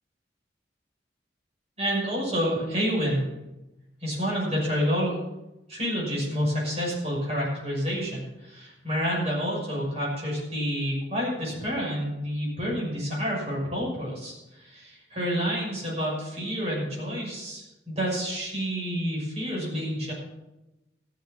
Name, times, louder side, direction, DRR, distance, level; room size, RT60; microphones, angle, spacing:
voice 1, 1.8-3.3 4.0-5.2 5.7-20.1, equal, 35° right, -4 dB, 6.3 m, -29 dB
14.0 x 7.7 x 7.2 m, 0.97 s
head